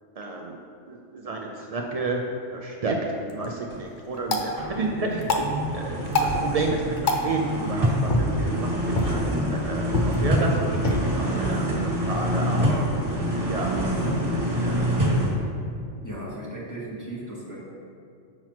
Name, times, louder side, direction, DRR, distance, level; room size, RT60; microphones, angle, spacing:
voice 1, 0.2-0.6 0.9-3.0 3.3-5.5 5.7-12.9 13.4-13.8 14.0-14.1 14.5-14.7, right 3 dB, 80° right, 0 dB, 0.3 m, -31 dB
sound 1, 3.1-13.2, left 1 dB, 50° left, 0.6 m, -30 dB
sound 2, 3.7-3.9 4.3-15.3, equal, 45° right, 1.7 m, -26 dB
voice 2, 16.0-17.6, right 1 dB, 15° left, -6 dB, 1.0 m, -36 dB
7.5 x 5.7 x 3.0 m, 2.4 s
omnidirectional pair, 1.3 m